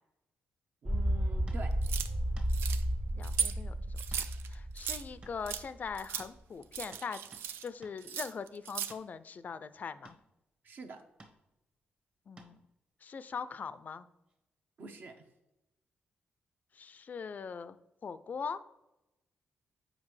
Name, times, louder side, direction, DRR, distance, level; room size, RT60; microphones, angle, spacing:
sound 1, 0.8-5.6 5.8-5.9, right 1 dB, 15° right, 0.5 m, -33 dB
voice 1, 0.8-1.7 10.6-11.0 14.8-15.3, right 2 dB, 60° right, 6 dB, 0.9 m, -46 dB
sound 2, 1.5-1.7 2.4-2.5 4.1-4.3 4.6-4.7 5.2-5.9 6.2-6.4 6.9-7.5 7.8-8.0 8.9-9.1 10.0-10.3 11.2-11.4 12.4-12.6 14.3-14.4, right 2 dB, 30° right, 1.1 m, -56 dB
sound 3, 1.8-2.1 2.5-2.8 3.2-3.5 4.0-5.0 5.5-5.6 6.0-6.3 6.6-7.7 8.0-8.9, right 8 dB, 90° right, 0.4 m, -37 dB
voice 2, 3.1-4.2 4.5-7.2 7.6-10.2 12.3-12.6 13.0-14.1 16.8-17.8 18.0-18.6, left 6 dB, 45° left, 14 dB, 0.4 m, -41 dB
7.3 x 5.1 x 3.2 m, 0.93 s
cardioid pair, 95°, 4 cm